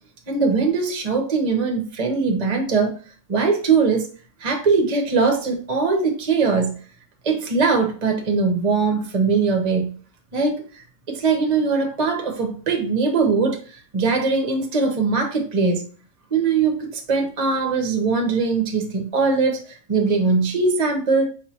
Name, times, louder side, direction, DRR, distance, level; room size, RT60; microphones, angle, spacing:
voice 1, 0.3-2.9 3.3-4.1 4.4-6.7 7.2-9.9 10.3-15.8 16.3-21.2, right 4 dB, 35° right, 0.7 m, -21 dB
5.0 x 3.1 x 2.7 m
omnidirectional pair, 1.3 m